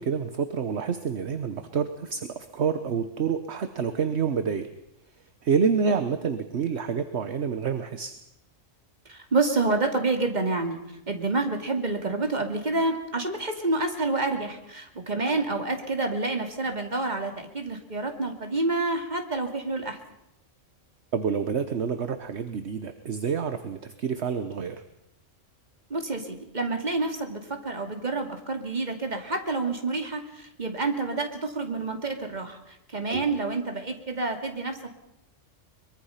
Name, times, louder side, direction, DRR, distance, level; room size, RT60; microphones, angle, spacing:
voice 1, 0.0-4.7 5.4-8.1 21.1-24.8 33.1-33.2, right 6 dB, 60° right, 9 dB, 1.3 m, -28 dB
voice 2, 9.1-10.8 11.1-20.0 25.9-34.9, right 3 dB, 35° right, 4 dB, 2.6 m, -28 dB
23.5 x 22.0 x 5.7 m, 0.83 s
omnidirectional pair, 1.3 m